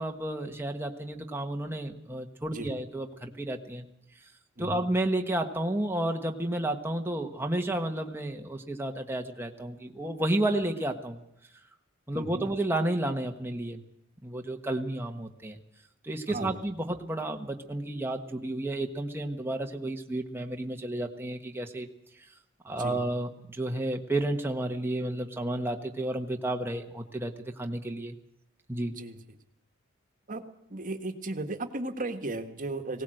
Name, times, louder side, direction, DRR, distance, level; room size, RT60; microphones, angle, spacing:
voice 1, 0.0-3.9 4.6-11.2 12.1-13.8 14.2-15.6 16.0-21.9 22.6-28.1 28.7-28.9, right 1 dB, 10° right, 3 dB, 1.3 m, -31 dB
voice 2, 12.1-12.5 16.3-16.6 22.8-23.0 28.9-29.2 30.3-30.4 30.7-33.0, right 2 dB, 40° right, 6 dB, 1.6 m, -35 dB
20.0 x 17.5 x 7.8 m, 0.83 s
head